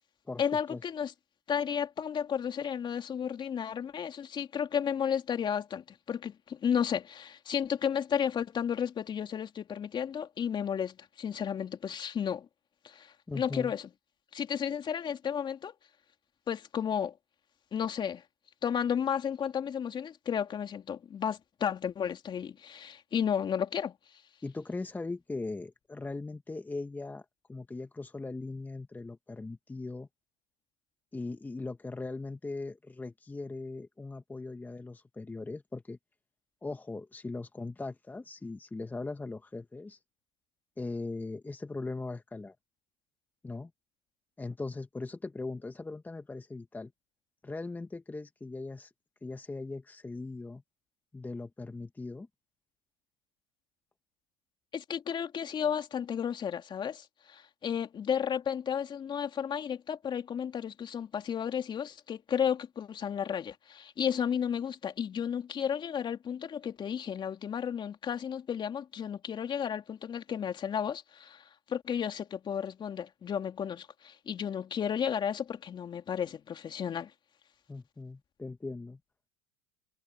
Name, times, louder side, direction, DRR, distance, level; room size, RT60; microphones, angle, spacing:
voice 1, 0.4-1.1 1.5-12.5 12.8-13.9 14.3-15.7 16.5-17.1 17.7-18.2 18.6-23.9 54.7-77.1, left 8 dB, 35° left, 2.9 m, -33 dB
voice 2, 13.3-13.7 24.4-30.1 31.1-36.0 36.6-40.0 40.8-42.6 43.4-43.7 44.4-46.9 47.4-48.9 49.2-50.6 51.1-52.3 77.7-79.0, left 3 dB, 10° left, 1.7 m, -39 dB
hypercardioid pair, 90°, 14 cm